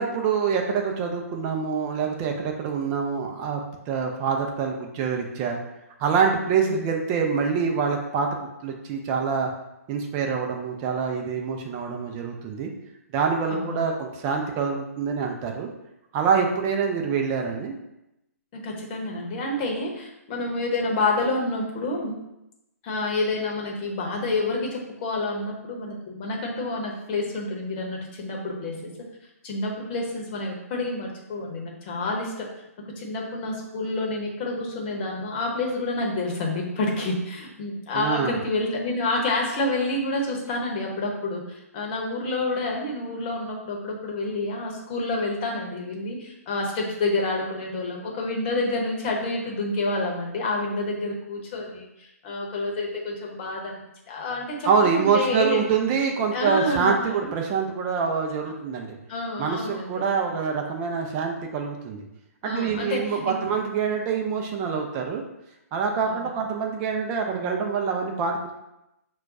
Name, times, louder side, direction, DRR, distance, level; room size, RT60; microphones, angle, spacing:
voice 1, 0.0-5.6 6.0-9.5 9.9-12.7 13.1-15.7 16.1-17.7 37.9-38.4 54.6-59.0 59.4-62.1 62.4-65.2 65.7-68.6, right 6 dB, 30° right, 2 dB, 0.5 m, -25 dB
voice 2, 13.5-13.9 18.5-22.1 22.8-28.9 29.4-32.5 33.0-53.8 54.1-55.6 56.3-57.3 59.1-60.0 62.4-63.4 66.1-66.2, left 2 dB, 35° left, -1 dB, 0.9 m, -28 dB
5.9 x 2.3 x 2.6 m, 0.88 s
figure-of-eight pair, 130°, 9 cm